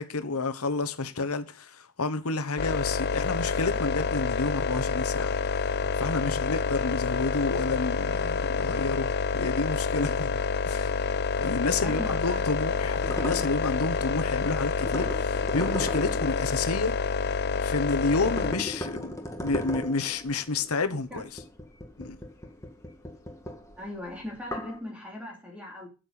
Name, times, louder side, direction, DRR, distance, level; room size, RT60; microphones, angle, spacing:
voice 1, 0.0-10.4 10.6-10.9 11.4-16.9 17.6-21.4 22.0-22.2, left 3 dB, 80° left, 1.2 m, -30 dB
sound 1, 2.6-18.5, left 5 dB, 45° left, 0.5 m, -28 dB
voice 2, 11.8-12.4 20.9-21.2 23.8-25.9, left 1 dB, 5° right, 3.0 m, -39 dB
sound 2, 12.9-17.6 18.0-24.8, left 1 dB, 15° left, 1.6 m, -38 dB
8.7 x 7.8 x 6.7 m
head